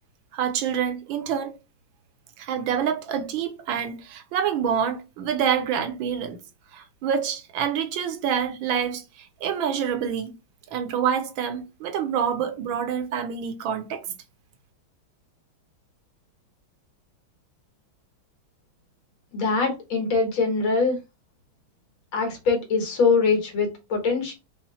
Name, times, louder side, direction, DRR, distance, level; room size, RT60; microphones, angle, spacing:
voice 1, 0.3-1.6 2.4-6.4 6.7-10.3 10.7-14.1, right 8 dB, 75° right, 1.4 m, -27 dB
voice 2, 19.3-21.0 22.1-24.3, left 4 dB, 80° left, 2.4 m, -23 dB
5.7 x 2.1 x 4.1 m
omnidirectional pair, 2.2 m